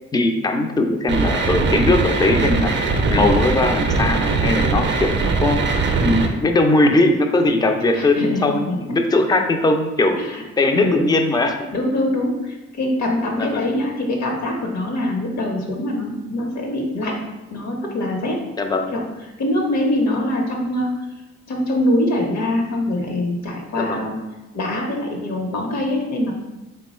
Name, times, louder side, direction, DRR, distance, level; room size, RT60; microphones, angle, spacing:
voice 1, 0.1-2.8 3.1-5.6 6.0-10.2 10.6-11.7 13.4-13.7 18.6-18.9 23.8-24.1, left 2 dB, 15° left, 5 dB, 0.4 m, -19 dB
sound 1, 1.1-6.3, right 3 dB, 40° right, 0.5 m, -20 dB
voice 2, 7.9-8.8 10.2-10.4 10.7-11.1 11.7-17.1 17.5-18.4 18.9-19.0 19.4-20.9 21.5-24.2 24.5-26.3, left 1 dB, 60° left, 1 dB, 1.0 m, -23 dB
3.6 x 2.2 x 4.1 m, 1.1 s
cardioid pair, 90°, 30 cm